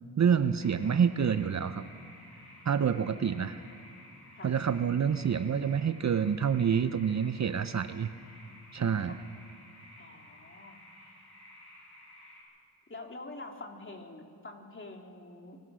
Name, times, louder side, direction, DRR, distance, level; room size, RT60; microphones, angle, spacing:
voice 1, 0.2-1.8 2.6-3.6 4.4-8.1 8.7-9.2, right 7 dB, 40° right, 12 dB, 0.7 m, -27 dB
sound 1, 0.6-12.4, left 1 dB, 65° left, 7.3 m, -54 dB
voice 2, 2.7-3.4 4.4-4.5 9.0-9.2 10.0-10.8 12.9-15.6, left 2 dB, 30° left, 2 dB, 3.1 m, -46 dB
25.5 x 19.0 x 6.3 m, 2.3 s
cardioid pair, 60°, 42 cm